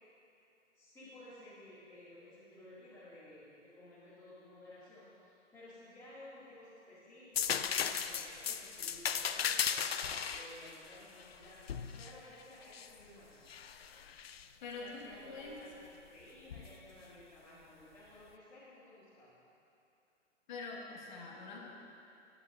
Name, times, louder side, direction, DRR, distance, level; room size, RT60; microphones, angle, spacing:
voice 1, 0.7-13.4 14.8-19.4, left 1 dB, 5° left, -15 dB, 2.3 m, -55 dB
sound 1, 7.3-12.9 13.5-14.4 16.5-16.7, left 7 dB, 55° left, 0.5 m, -36 dB
voice 2, 14.6-15.6 20.5-21.7, left 4 dB, 40° left, -1 dB, 1.8 m, -45 dB
19.5 x 9.9 x 2.6 m, 2.7 s
figure-of-eight pair, 125°, 37 cm